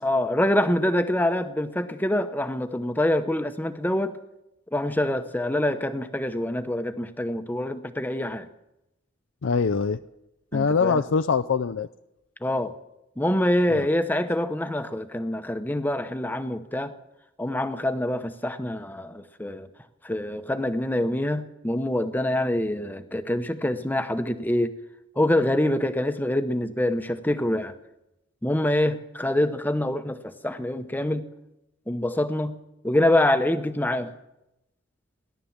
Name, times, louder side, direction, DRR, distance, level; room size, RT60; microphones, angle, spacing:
voice 1, 0.0-4.2 4.7-8.5 10.5-11.0 12.4-12.7 13.2-16.9 17.4-19.7 20.0-24.7 25.2-27.7 28.4-31.3 31.9-32.6 32.8-34.1, left 1 dB, 10° left, 10 dB, 0.8 m, -25 dB
voice 2, 9.4-10.0 10.5-11.9 13.8-13.9, left 5 dB, 80° left, 8 dB, 0.5 m, -23 dB
17.5 x 11.5 x 7.2 m, 0.91 s
head